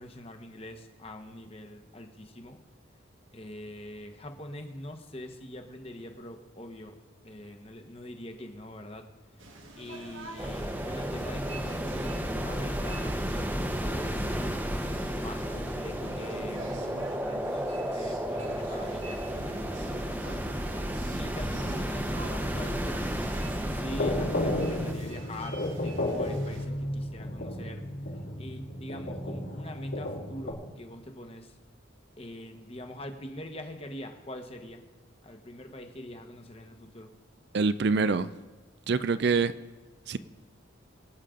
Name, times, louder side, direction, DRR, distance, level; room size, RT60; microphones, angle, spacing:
voice 1, 0.0-2.6 3.3-6.9 7.2-9.1 9.8-14.3 14.9-20.4 21.1-23.1 23.7-27.9 28.4-31.6 32.2-34.8 35.2-37.1, left 1 dB, 30° left, 6 dB, 1.1 m, -44 dB
sound 1, 9.4-26.7, right 2 dB, 80° right, 1.8 m, -46 dB
sound 2, 10.4-24.9, equal, 10° right, 0.8 m, -32 dB
sound 3, 23.9-30.5, left 1 dB, 70° left, 3.9 m, -33 dB
voice 2, 37.5-38.3 38.9-39.5 40.1-40.2, right 4 dB, 55° right, 14 dB, 0.4 m, -25 dB
23.5 x 8.4 x 3.8 m, 1.2 s
head